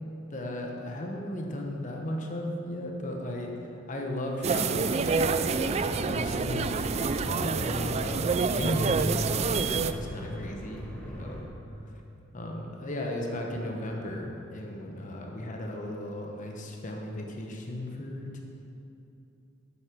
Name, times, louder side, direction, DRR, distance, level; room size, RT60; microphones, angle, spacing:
voice 1, 0.3-11.4 12.3-18.4, left 1 dB, 40° left, 0 dB, 1.0 m, -36 dB
sound 1, 4.4-9.9, right 5 dB, 35° right, 0.3 m, -28 dB
sound 2, 5.0-11.4, equal, 5° left, 1.2 m, -38 dB
8.6 x 7.8 x 6.1 m, 2.8 s
head